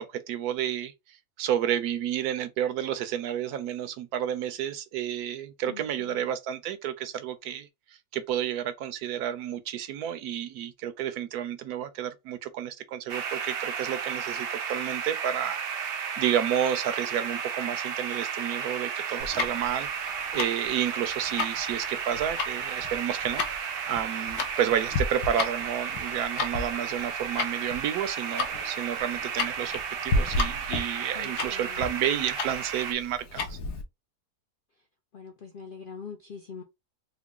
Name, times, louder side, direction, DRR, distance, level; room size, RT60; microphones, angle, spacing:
voice 1, 0.0-7.7 8.1-33.6, right 10 dB, 75° right, 1.1 m, -31 dB
voice 2, 5.6-6.3 31.1-31.9 35.1-36.6, left 6 dB, 65° left, 0.5 m, -43 dB
sound 1, 13.1-32.9, right 7 dB, 60° right, 0.6 m, -33 dB
Tick-tock, 19.2-33.8, left 3 dB, 85° left, 1.3 m, -33 dB
3.8 x 2.1 x 3.6 m
omnidirectional pair, 1.6 m